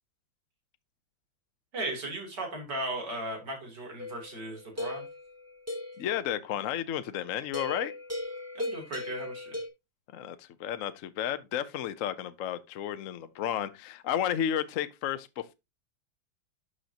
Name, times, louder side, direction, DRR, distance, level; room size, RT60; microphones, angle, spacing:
voice 1, 1.7-5.1 8.6-9.6, right 1 dB, 60° right, 3.9 m, -36 dB
sound 1, 4.0-6.1 7.5-9.7, left 2 dB, 10° right, 2.2 m, -37 dB
voice 2, 6.0-7.9 10.1-15.5, left 10 dB, 60° left, 0.9 m, -32 dB
11.5 x 6.5 x 2.9 m
omnidirectional pair, 2.1 m